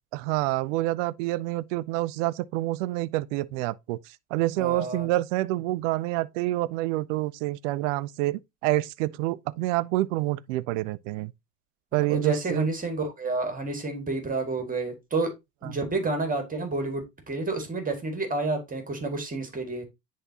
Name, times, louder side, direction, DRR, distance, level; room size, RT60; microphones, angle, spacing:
voice 1, 0.1-11.3 11.9-12.7, right 17 dB, 50° right, 0.5 m, -27 dB
voice 2, 4.6-5.1 12.1-15.3 15.6-19.8, right 3 dB, 15° right, 1.9 m, -29 dB
9.8 x 3.6 x 2.8 m
hypercardioid pair, 90°, 49 cm